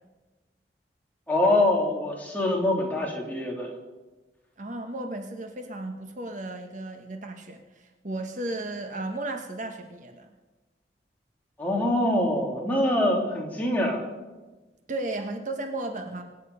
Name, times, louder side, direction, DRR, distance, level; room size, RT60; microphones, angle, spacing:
voice 1, 1.3-3.7 11.6-14.0, left 1 dB, 10° left, -2 dB, 3.1 m, -24 dB
voice 2, 4.6-10.3 14.9-16.2, right 2 dB, 45° right, 5 dB, 1.2 m, -34 dB
24.5 x 9.3 x 5.5 m, 1.2 s
head